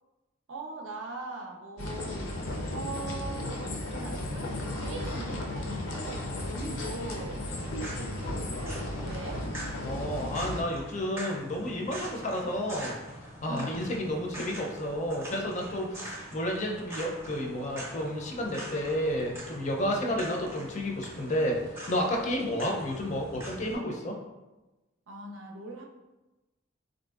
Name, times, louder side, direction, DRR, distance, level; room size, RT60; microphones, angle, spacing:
voice 1, 0.5-7.4 7.9-9.5 13.5-14.0 19.8-20.2 22.4-22.6 25.1-25.9, right 2 dB, 65° right, 1 dB, 0.5 m, -41 dB
sound 1, 1.8-10.6, left 1 dB, 90° left, 0.5 m, -35 dB
sound 2, 7.5-23.8, right 1 dB, 10° right, 0.6 m, -43 dB
voice 2, 9.8-12.9 13.4-21.6 21.9-24.2, equal, 35° left, 0 dB, 0.4 m, -31 dB
3.8 x 2.6 x 2.3 m, 1.1 s
head